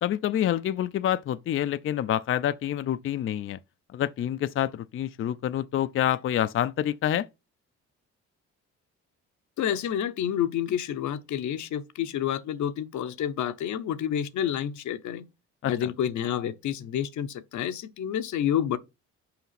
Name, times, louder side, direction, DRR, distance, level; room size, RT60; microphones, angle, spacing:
voice 1, 0.0-3.6 3.9-7.3 15.6-15.9, left 11 dB, 45° left, 0.4 m, -27 dB
voice 2, 9.6-15.3 15.7-18.8, left 10 dB, 70° left, 0.8 m, -29 dB
5.8 x 4.9 x 5.7 m
cardioid pair, 90°, 30 cm